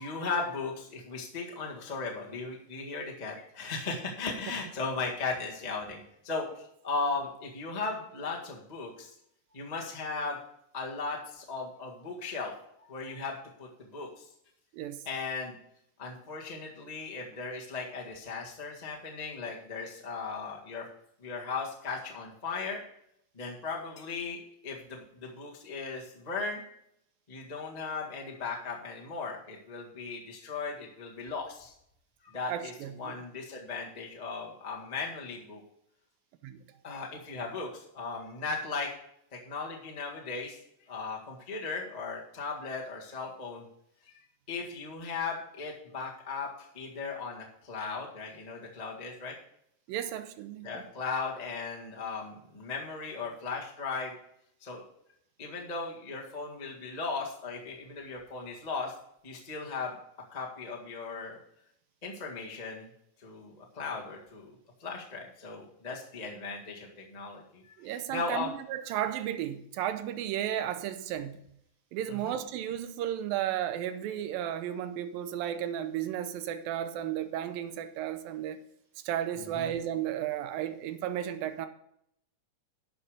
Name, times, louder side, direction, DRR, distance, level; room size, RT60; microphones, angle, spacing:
voice 1, 0.0-9.1 9.5-10.4 10.7-12.5 12.9-14.3 15.0-15.5 16.0-20.8 21.2-22.8 23.3-26.6 27.3-31.7 32.2-35.6 36.8-38.9 39.3-40.6 40.9-43.6 44.0-44.1 44.5-49.3 50.6-54.1 54.6-54.8 55.4-58.9 59.2-59.9 60.3-61.4 62.0-62.9 63.2-64.5 64.8-68.5 72.1-72.4 79.4-79.7, left 4 dB, 25° left, 0.8 m, -37 dB
voice 2, 32.5-33.2 36.4-36.6 49.9-50.9 67.8-71.4 71.9-78.6 79.1-81.7, right 11 dB, 90° right, 2.5 m, -34 dB
12.0 x 7.0 x 4.9 m
omnidirectional pair, 4.0 m